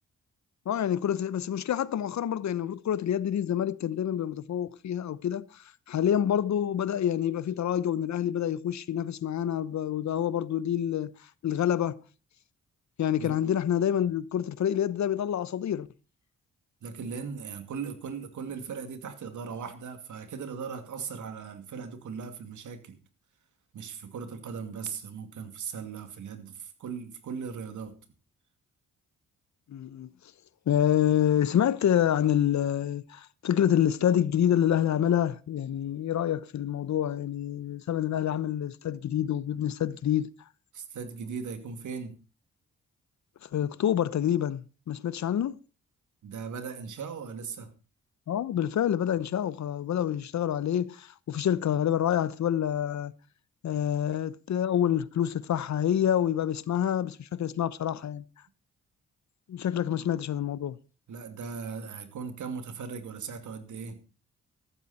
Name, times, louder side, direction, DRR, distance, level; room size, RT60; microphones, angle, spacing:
voice 1, 0.7-11.1 11.4-12.0 13.0-15.9 29.7-30.1 30.7-40.3 43.4-45.6 48.3-53.1 53.6-58.2 59.5-60.8, left 10 dB, 65° left, 0.9 m, -27 dB
voice 2, 16.8-23.0 23.7-27.9 40.7-42.2 46.2-47.7 61.1-64.0, right 6 dB, 75° right, 2.6 m, -38 dB
14.5 x 12.5 x 4.3 m
supercardioid pair, 55°, 30 cm